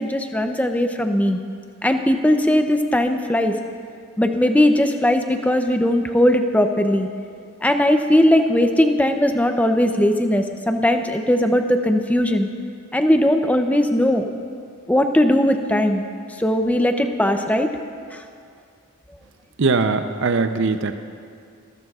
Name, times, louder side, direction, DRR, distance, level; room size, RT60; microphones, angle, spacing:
voice 1, 0.0-1.4 1.8-3.6 4.2-7.1 7.6-12.5 12.9-14.3 14.9-16.1 16.4-17.7, left 1 dB, 5° left, 6 dB, 0.5 m, -19 dB
voice 2, 19.6-21.0, right 4 dB, 55° right, 8 dB, 0.6 m, -20 dB
23.5 x 14.0 x 2.4 m, 2.3 s
head